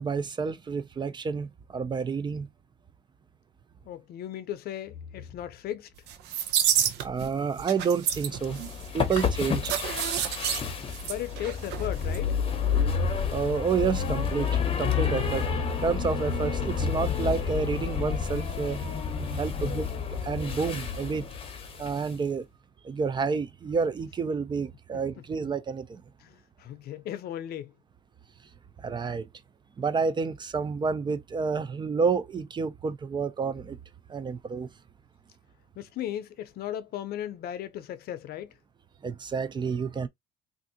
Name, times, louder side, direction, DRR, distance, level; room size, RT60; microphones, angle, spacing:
voice 1, 0.0-2.5 7.0-8.6 8.9-9.8 13.3-14.5 14.8-15.5 15.8-19.0 19.4-19.9 20.2-21.3 21.8-22.5 22.8-26.0 28.8-29.3 29.8-33.8 34.1-34.7 39.0-40.1, right 5 dB, 25° right, 0.4 m, -29 dB
voice 2, 3.8-5.9 11.0-12.4 19.6-19.9 26.2-27.7 35.8-38.5, left 11 dB, 65° left, 0.6 m, -36 dB
sound 1, 6.1-7.3 7.6-11.9 12.1-12.2, right 9 dB, 85° right, 0.6 m, -29 dB
sound 2, 8.3-22.2, left 6 dB, 35° left, 0.8 m, -30 dB
3.5 x 2.5 x 2.7 m
cardioid pair, 110°, 17 cm